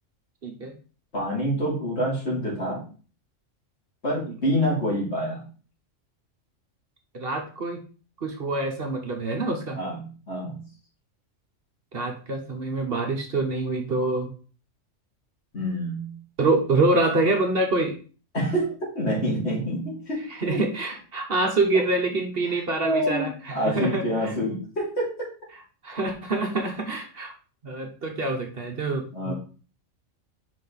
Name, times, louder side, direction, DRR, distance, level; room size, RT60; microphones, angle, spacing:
voice 1, 0.4-0.7 4.3-4.4 7.1-7.8 8.2-9.8 11.9-14.3 16.4-18.0 20.4-24.0 25.8-27.3 27.6-29.3, right 2 dB, 50° right, 3 dB, 1.2 m, -26 dB
voice 2, 1.1-2.8 4.0-5.4 9.7-10.6 15.5-16.2 18.3-20.2 20.5-20.6 21.7-21.8 22.8-25.3 29.1-29.3, equal, 60° left, -4 dB, 3.1 m, -27 dB
5.3 x 5.2 x 4.0 m, 0.38 s
omnidirectional pair, 1.3 m